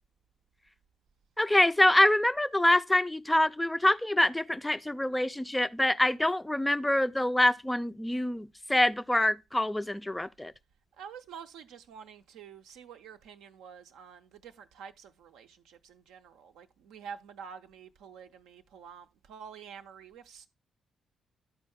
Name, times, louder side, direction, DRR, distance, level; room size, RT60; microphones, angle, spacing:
voice 1, 1.4-10.5, left 1 dB, 10° left, 0.4 m, -25 dB
voice 2, 11.0-20.5, right 7 dB, 65° right, 0.5 m, -48 dB
12.0 x 4.5 x 3.4 m
figure-of-eight pair, 40°, 0 cm